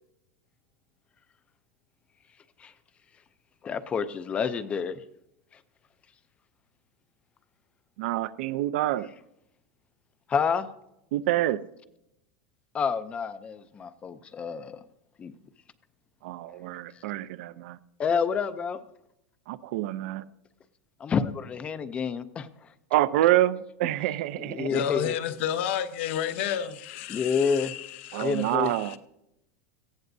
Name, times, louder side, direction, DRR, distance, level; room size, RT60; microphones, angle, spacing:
voice 1, 3.6-5.0 10.3-10.7 12.7-14.8 15.2-15.3 18.0-18.8 21.0-22.5 24.4-25.1 27.1-27.7 28.2-28.7, left 6 dB, 15° left, 0.5 m, -28 dB
voice 2, 8.0-9.1 11.1-11.6 16.2-17.8 19.5-20.2 22.9-24.7 28.1-28.9, right 14 dB, 55° right, 0.6 m, -27 dB
voice 3, 24.7-29.0, left 9 dB, 50° left, 1.0 m, -31 dB
18.5 x 15.5 x 2.7 m
supercardioid pair, 175°, 8 cm